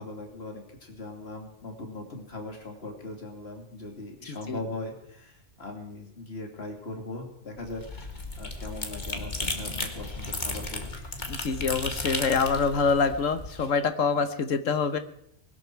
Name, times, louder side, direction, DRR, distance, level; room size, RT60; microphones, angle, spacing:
voice 1, 0.0-10.9, left 2 dB, 55° left, 2 dB, 2.8 m, -40 dB
sound 1, 7.6-13.7, left 2 dB, 35° left, 1.9 m, -34 dB
voice 2, 11.3-15.0, left 5 dB, 85° left, 10 dB, 1.5 m, -26 dB
20.5 x 13.0 x 4.6 m, 0.72 s
omnidirectional pair, 1.3 m